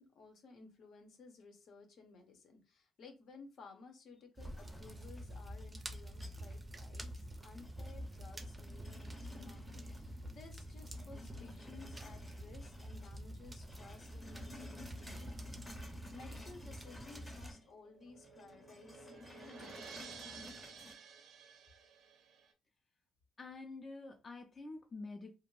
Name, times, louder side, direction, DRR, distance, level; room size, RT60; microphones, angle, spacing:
voice 1, 0.0-20.6, left 4 dB, 65° left, 4 dB, 0.8 m, -57 dB
sound 1, 4.4-6.7 7.1-10.3 10.6-13.1 13.4-17.7 18.0-20.9, left 2 dB, 20° left, 0.8 m, -55 dB
sound 2, 4.4-17.5, equal, 20° right, 0.5 m, -47 dB
sound 3, 17.7-22.5, right 6 dB, 75° right, 0.5 m, -53 dB
voice 2, 23.4-25.3, left 3 dB, 35° left, 3 dB, 0.4 m, -47 dB
2.4 x 2.0 x 3.1 m, 0.29 s
cardioid pair, 90°, 0 cm